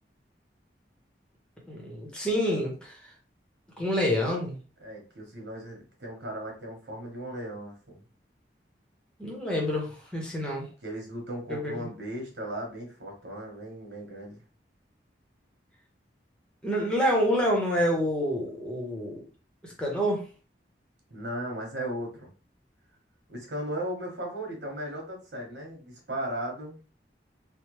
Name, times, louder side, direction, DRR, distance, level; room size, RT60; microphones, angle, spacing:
voice 1, 1.7-3.0 3.8-4.6 9.2-10.6 11.5-11.9 16.6-19.2 19.8-20.2, equal, 5° left, -1 dB, 0.8 m, -27 dB
voice 2, 4.8-8.0 10.8-14.4 21.1-22.3 23.3-26.8, right 1 dB, 85° right, 1 dB, 1.1 m, -36 dB
3.2 x 2.1 x 3.1 m, 0.35 s
head